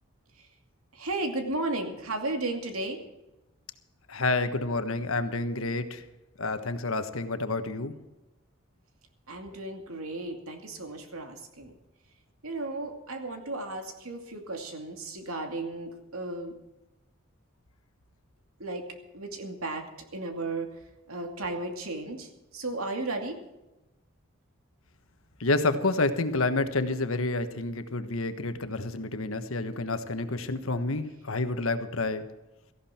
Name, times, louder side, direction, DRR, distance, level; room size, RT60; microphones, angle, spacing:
voice 1, 0.9-3.0 9.3-11.8 12.4-16.5 18.6-18.9 19.1-19.9 20.1-23.4, right 2 dB, 90° right, 4 dB, 2.5 m, -34 dB
voice 2, 4.1-6.0 6.4-7.9 25.4-32.3, left 2 dB, 80° left, 9 dB, 1.4 m, -29 dB
17.5 x 14.5 x 4.5 m, 1.0 s
head